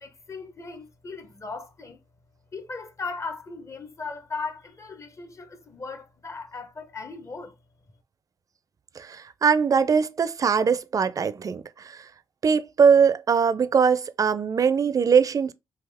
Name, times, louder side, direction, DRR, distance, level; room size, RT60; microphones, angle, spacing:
voice 1, 0.0-2.0 2.5-7.5, left 4 dB, 35° left, 0.8 m, -37 dB
voice 2, 9.0-12.0 12.4-15.5, right 6 dB, 45° right, 0.4 m, -21 dB
3.5 x 2.7 x 3.4 m
supercardioid pair, 65°, 8 cm